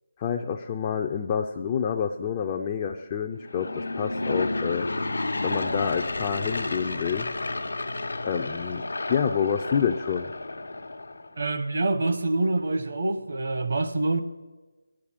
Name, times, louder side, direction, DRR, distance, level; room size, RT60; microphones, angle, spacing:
voice 1, 0.2-4.9 5.4-7.3 8.2-8.8 9.1-10.3, left 7 dB, 20° left, 0.4 m, -28 dB
Aircraft / Engine, 3.4-11.4, left 2 dB, 85° left, 0.9 m, -31 dB
voice 2, 11.4-14.2, right 2 dB, 55° right, 0.9 m, -26 dB
9.2 x 8.8 x 8.6 m
figure-of-eight pair, 170°, 0 cm